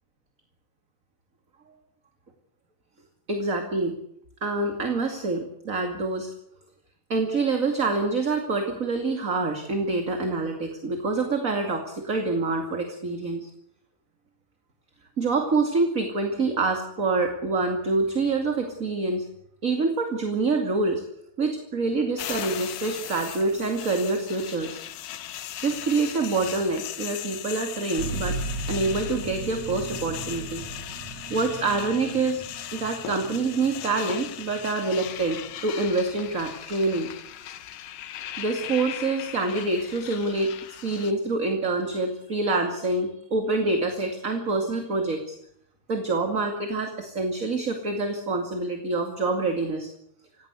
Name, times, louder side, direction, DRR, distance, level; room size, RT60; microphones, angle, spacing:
voice 1, 3.3-4.0 4.4-6.3 7.1-13.5 15.2-19.3 19.6-21.0 21.4-24.8 25.6-28.4 28.7-30.6 31.3-32.5 32.7-37.1 38.4-40.5 40.8-45.3 45.9-49.9, right 3 dB, 25° right, 4 dB, 2.4 m, -26 dB
sound 1, 22.2-41.1, left 12 dB, 90° left, 2.8 m, -38 dB
sound 2, 28.0-35.5 36.2-36.3, right 3 dB, 60° right, 3.3 m, -37 dB
27.0 x 17.0 x 8.2 m, 0.72 s
omnidirectional pair, 3.7 m